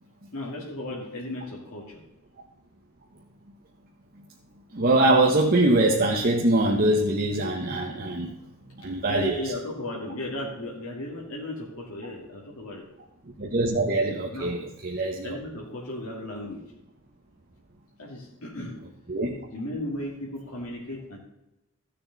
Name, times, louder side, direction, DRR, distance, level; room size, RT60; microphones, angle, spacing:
voice 1, 0.3-2.0 9.0-12.9 14.3-14.6 15.2-16.6 18.0-18.7 19.5-21.2, left 1 dB, 65° left, -4 dB, 2.3 m, -35 dB
voice 2, 4.7-8.3 8.8-9.5 13.4-15.4 19.1-19.4, right 2 dB, 45° right, -1 dB, 1.1 m, -23 dB
15.5 x 6.7 x 4.0 m, 0.92 s
head